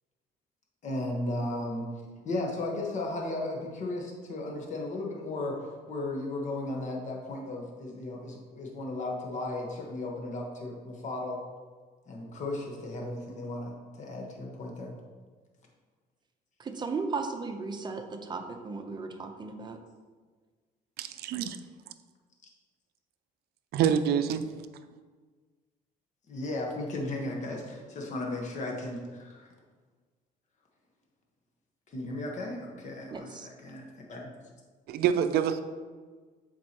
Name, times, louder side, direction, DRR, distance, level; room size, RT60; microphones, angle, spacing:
voice 1, 0.8-1.9 2.2-11.4 12.1-14.9 26.3-29.5 31.9-34.3, left 2 dB, 45° left, 0 dB, 1.3 m, -35 dB
voice 2, 16.6-19.8 33.1-33.5, right 4 dB, 25° right, 5 dB, 0.7 m, -36 dB
voice 3, 21.0-21.6 23.7-24.5 34.9-35.6, right 8 dB, 70° right, 10 dB, 0.4 m, -26 dB
7.4 x 4.5 x 2.9 m, 1.5 s
cardioid pair, 110°, 17 cm